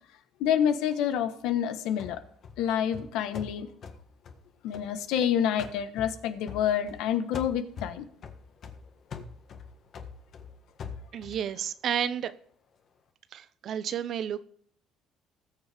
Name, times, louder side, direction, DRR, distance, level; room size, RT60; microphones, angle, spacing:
voice 1, 0.4-2.2 2.6-3.7 4.6-8.1, left 9 dB, 80° left, 10 dB, 1.2 m, -28 dB
sound 1, 2.0-5.2 5.6-7.1 7.3-11.5, left 5 dB, 50° left, 1.5 m, -43 dB
voice 2, 11.1-12.3 13.3-14.5, right 9 dB, 55° right, 14 dB, 0.7 m, -31 dB
20.0 x 6.8 x 3.5 m, 0.62 s
cardioid pair, 110°, 0 cm